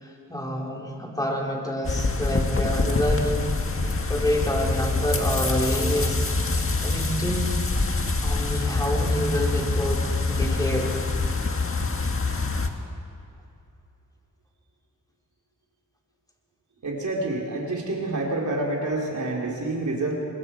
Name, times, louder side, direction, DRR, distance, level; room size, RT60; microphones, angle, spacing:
voice 1, 0.0-6.3 6.8-7.5 8.2-10.9, equal, 10° left, -2 dB, 4.4 m, -28 dB
sound 1, 1.8-12.7, left 3 dB, 40° left, 1.7 m, -25 dB
voice 2, 16.8-20.1, right 2 dB, 60° right, -2 dB, 3.9 m, -28 dB
25.5 x 22.0 x 4.6 m, 2.8 s
cardioid pair, 75°, 33 cm